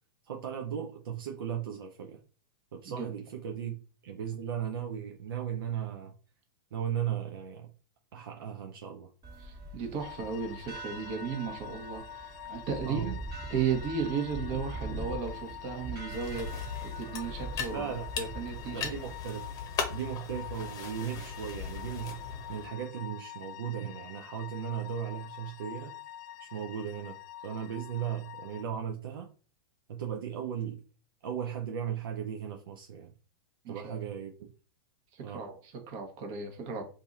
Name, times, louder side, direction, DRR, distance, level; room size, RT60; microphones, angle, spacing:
voice 1, 0.2-2.2 2.7-3.8 4.0-6.1 6.7-7.7 8.1-9.1 12.8-13.1 17.7-18.0 18.7-19.5 19.9-22.2 22.5-26.0 26.4-27.2 27.4-29.3 29.9-30.8 31.2-33.1 33.7-34.5 35.2-35.4, right 9 dB, 75° right, 1 dB, 0.5 m, -36 dB
sound 1, 9.2-19.1, right 2 dB, 30° right, 1.3 m, -43 dB
voice 2, 9.4-13.2 13.5-16.5 16.8-17.9 18.2-18.9 33.6-34.0 35.1-36.8, right 6 dB, 45° right, 5 dB, 1.1 m, -35 dB
sound 2, 10.0-28.6, left 12 dB, 50° left, 0.4 m, -46 dB
sound 3, 16.1-22.7, left 6 dB, 30° left, 0.8 m, -39 dB
2.7 x 2.5 x 4.0 m, 0.36 s
hypercardioid pair, 110°, 12 cm